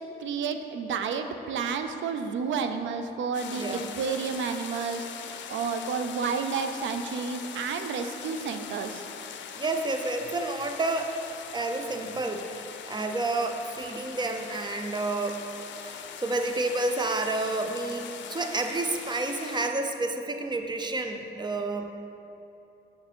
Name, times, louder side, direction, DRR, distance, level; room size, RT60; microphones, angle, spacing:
voice 1, 0.2-5.1 5.5-9.0, right 5 dB, 70° right, 7 dB, 0.6 m, -31 dB
sound 1, 3.3-19.7, left 7 dB, 65° left, 0.5 m, -41 dB
voice 2, 9.6-11.1 11.5-15.4 15.8-21.9, right 2 dB, 20° right, 6 dB, 0.6 m, -30 dB
6.7 x 6.2 x 4.4 m, 2.9 s
cardioid pair, 90°, 20 cm